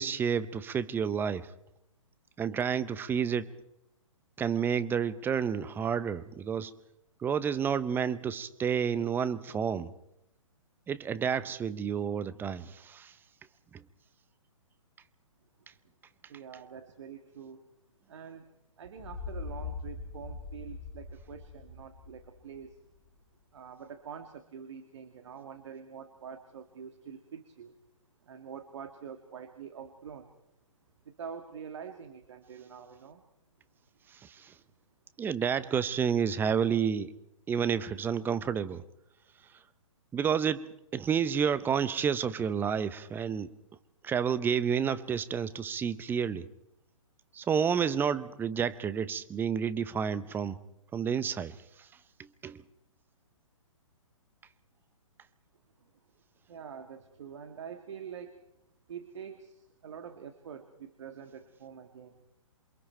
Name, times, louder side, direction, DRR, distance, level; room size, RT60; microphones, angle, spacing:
voice 1, 0.0-1.5 2.4-3.5 4.4-6.7 7.2-9.9 10.9-13.2 13.7-13.8 34.1-34.6 35.2-37.1 37.5-38.8 39.5-39.6 40.1-43.5 44.0-46.5 47.3-50.6 50.9-51.9 52.2-52.6, right 7 dB, 10° right, 15 dB, 0.9 m, -30 dB
voice 2, 16.3-17.6 18.1-18.5 18.8-22.8 23.5-27.7 28.2-30.3 31.1-33.2 55.8-55.9 56.5-58.4 58.9-62.2, right 7 dB, 60° right, 7 dB, 2.0 m, -45 dB
sound 1, 19.0-22.8, left 4 dB, 45° left, 6.3 m, -42 dB
28.0 x 24.5 x 4.6 m, 0.83 s
hypercardioid pair, 130°, 17 cm